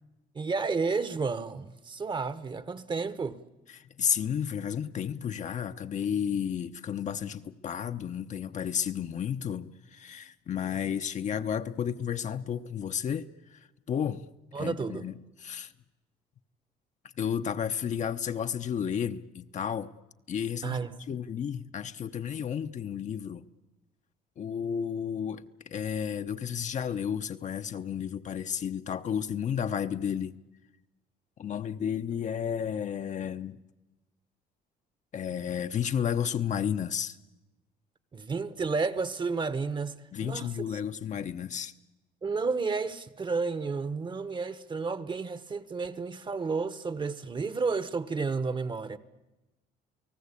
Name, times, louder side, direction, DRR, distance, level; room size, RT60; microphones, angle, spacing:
voice 1, 0.3-3.4 14.5-15.1 20.6-21.2 38.1-40.8 42.2-49.0, right 4 dB, 30° right, 1.1 m, -31 dB
voice 2, 4.0-13.6 13.9-14.3 14.6-15.1 15.4-15.7 17.2-19.9 20.3-20.8 21.1-23.4 24.4-30.4 31.4-33.6 35.1-37.2 40.1-41.7, left 8 dB, 45° left, 0.9 m, -32 dB
29.5 x 18.5 x 8.4 m
cardioid pair, 110°, 17 cm